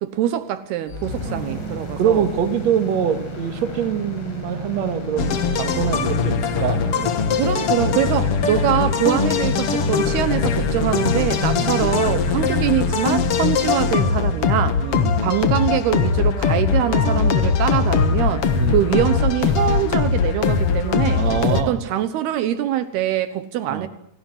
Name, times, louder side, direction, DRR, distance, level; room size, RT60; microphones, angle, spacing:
voice 1, 0.0-2.2 7.0-14.8 15.2-18.5 18.7-21.2 21.5-23.9, right 11 dB, 75° right, 12 dB, 2.9 m, -23 dB
sound 1, 0.9-14.8, right 1 dB, 85° left, 8.6 m, -33 dB
voice 2, 1.2-6.8 10.6-10.7 11.6-11.7 12.4-12.5 14.8-15.2 18.5-18.8 21.2-21.8 23.7-23.9, right 8 dB, 50° right, 9 dB, 2.3 m, -24 dB
sound 2, 5.2-21.6, left 5 dB, 60° left, 1.6 m, -21 dB
28.0 x 18.0 x 7.9 m, 0.73 s
omnidirectional pair, 5.0 m